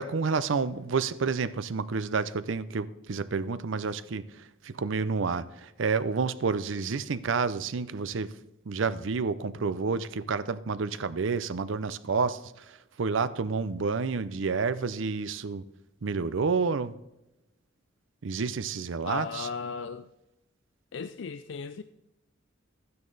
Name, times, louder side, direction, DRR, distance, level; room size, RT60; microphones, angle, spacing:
voice 1, 0.0-8.3 8.7-15.6 16.0-16.9 18.2-19.5, right 4 dB, 80° right, 0.6 m, -29 dB
voice 2, 19.0-20.1 20.9-21.8, left 5 dB, 65° left, 0.4 m, -36 dB
12.5 x 9.5 x 4.0 m
head